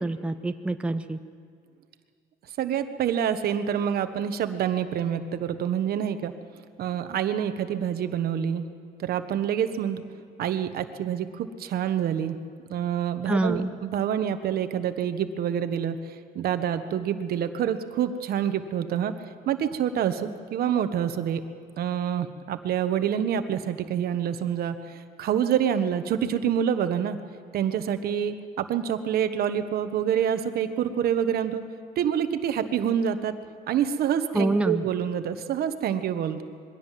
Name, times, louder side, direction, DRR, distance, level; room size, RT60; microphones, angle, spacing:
voice 1, 0.0-1.2 13.3-13.7 34.3-34.8, right 2 dB, 5° right, 8 dB, 0.8 m, -26 dB
voice 2, 2.6-6.3 6.8-8.6 9.0-10.0 10.4-12.4 12.7-16.0 16.3-19.1 19.5-21.4 21.8-27.2 27.5-31.6 32.0-33.3 33.7-36.4, right 9 dB, 65° right, 9 dB, 1.3 m, -27 dB
22.0 x 16.5 x 7.6 m, 2.2 s
cardioid pair, 110°, 17 cm